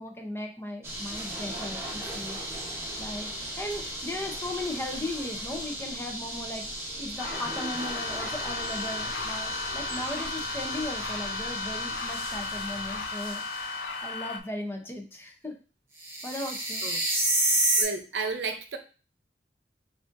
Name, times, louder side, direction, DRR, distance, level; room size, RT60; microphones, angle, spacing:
voice 1, 0.0-15.5 16.2-16.8, left 1 dB, 15° left, 2 dB, 0.6 m, -37 dB
sound 1, 0.8-13.8 16.0-17.8, right 1 dB, 15° right, 1.0 m, -33 dB
sound 2, 7.2-14.4, left 3 dB, 80° left, 0.6 m, -35 dB
sound 3, 8.0-13.1, right 1 dB, 45° left, 1.4 m, -51 dB
voice 2, 16.8-17.2 17.8-18.8, right 4 dB, 75° right, 5 dB, 0.6 m, -33 dB
6.2 x 2.5 x 2.6 m, 0.35 s
head